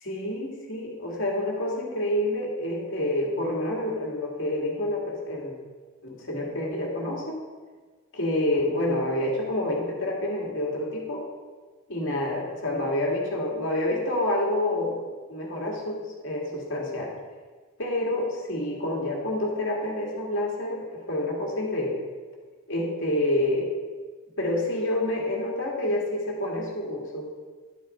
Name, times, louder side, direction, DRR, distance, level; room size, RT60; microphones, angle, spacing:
voice 1, 0.1-5.5 6.0-7.4 8.1-11.2 11.9-15.0 15.3-17.1 17.8-22.0 22.7-23.7 24.4-27.2, left 1 dB, 65° left, -2 dB, 2.2 m, -28 dB
11.0 x 7.2 x 4.4 m, 1.4 s
head